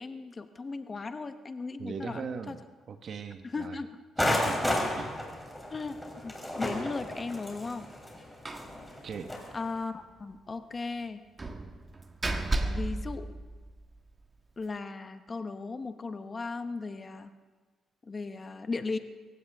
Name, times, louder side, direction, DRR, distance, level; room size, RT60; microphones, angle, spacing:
voice 1, 0.0-2.6 3.5-4.0 5.7-6.0 6.2-7.9 9.5-11.2 12.7-13.3 14.6-17.3 18.1-19.0, left 4 dB, 30° left, 8 dB, 1.0 m, -37 dB
voice 2, 1.8-2.6 2.9-3.8 4.2-4.7 4.9-5.2 9.0-9.4, right 5 dB, 55° right, 8 dB, 1.2 m, -39 dB
sound 1, 4.2-9.5, left 1 dB, 5° left, 3.7 m, -32 dB
Slam, 8.5-8.8 9.1-9.2 9.5-9.6 11.4-14.0, right 2 dB, 25° right, 1.5 m, -33 dB
25.0 x 15.5 x 3.6 m, 1.3 s
cardioid pair, 90°, 0 cm